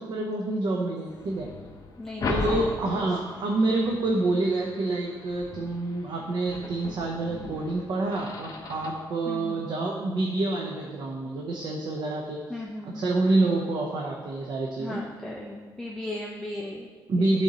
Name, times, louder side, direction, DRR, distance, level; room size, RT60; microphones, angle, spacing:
voice 1, 0.0-1.5 2.3-12.4 12.9-15.0 17.1-17.4, right 2 dB, 60° right, -1 dB, 0.8 m, -27 dB
sound 1, 1.0-9.1, left 3 dB, 45° left, 0.9 m, -37 dB
voice 2, 2.0-2.8 3.1-3.2 9.3-9.7 12.5-13.1 14.8-17.4, left 1 dB, 5° left, -3 dB, 0.6 m, -37 dB
11.0 x 4.4 x 2.9 m, 1.5 s
cardioid pair, 135°, 8 cm